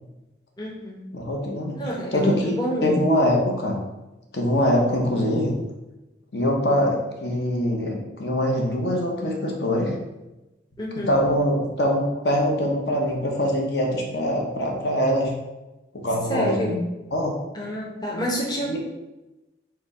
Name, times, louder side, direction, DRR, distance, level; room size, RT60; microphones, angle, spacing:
voice 1, 0.6-1.0 1.7-3.0 10.8-11.1 16.3-16.8 17.5-18.8, equal, 20° left, -3 dB, 0.7 m, -28 dB
voice 2, 1.1-1.8 2.1-2.5 2.8-3.8 4.3-5.5 6.3-10.0 11.0-15.3 15.9-16.7 17.1-17.4 18.7-18.8, equal, 70° left, 0 dB, 0.8 m, -23 dB
4.7 x 2.2 x 4.7 m, 1.0 s
head